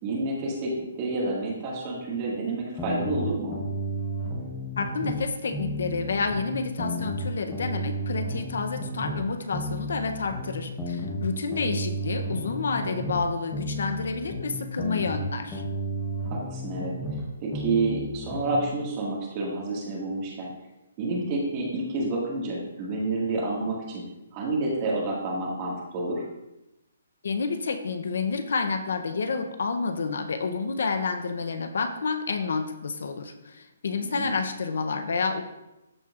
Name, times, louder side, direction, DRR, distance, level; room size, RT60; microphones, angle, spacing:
voice 1, 0.0-3.6 11.3-11.7 16.3-16.9 17.4-20.5 21.0-24.0 24.3-26.2 34.0-34.3, right 2 dB, 25° right, -4 dB, 1.8 m, -29 dB
sound 1, 2.8-5.3 5.5-9.3 9.5-13.3 13.5-17.3 17.5-18.6, equal, 5° left, 1.0 m, -32 dB
voice 2, 4.8-15.6 27.2-35.4, left 4 dB, 70° left, 8 dB, 0.7 m, -29 dB
13.5 x 4.4 x 2.4 m, 0.93 s
hypercardioid pair, 170°, 0 cm